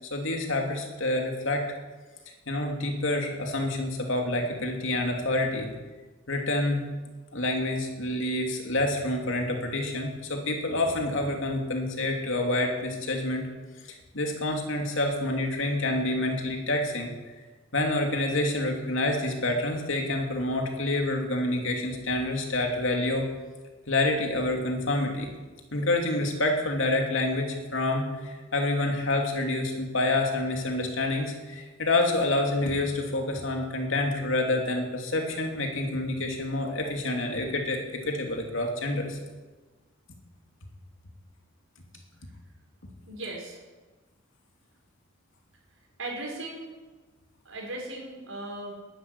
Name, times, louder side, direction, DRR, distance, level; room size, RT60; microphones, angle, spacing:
voice 1, 0.1-1.6 2.5-5.7 6.3-6.8 7.3-13.5 14.1-17.1 17.7-23.3 23.9-25.3 25.7-39.2, left 2 dB, 70° left, 2 dB, 2.9 m, -27 dB
voice 2, 43.1-43.6 46.0-46.7 47.5-48.7, right 2 dB, 75° right, -1 dB, 5.3 m, -37 dB
12.5 x 11.0 x 9.9 m, 1.3 s
head